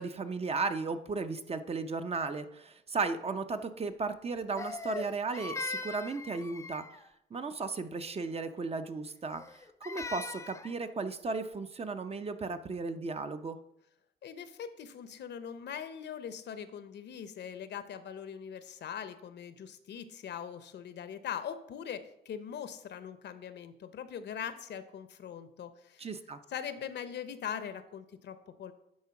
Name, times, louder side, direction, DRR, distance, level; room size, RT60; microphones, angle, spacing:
voice 1, 0.0-6.8 7.3-9.4 9.8-13.6 26.0-26.4, right 4 dB, 30° right, 9 dB, 0.6 m, -35 dB
Crying sobbing, 4.6-7.1 9.3-10.8, left 3 dB, 15° left, 0.4 m, -40 dB
voice 2, 14.2-26.1 26.5-28.7, left 8 dB, 60° left, 12 dB, 0.7 m, -41 dB
9.6 x 3.6 x 5.8 m, 0.82 s
cardioid pair, 90°, 20 cm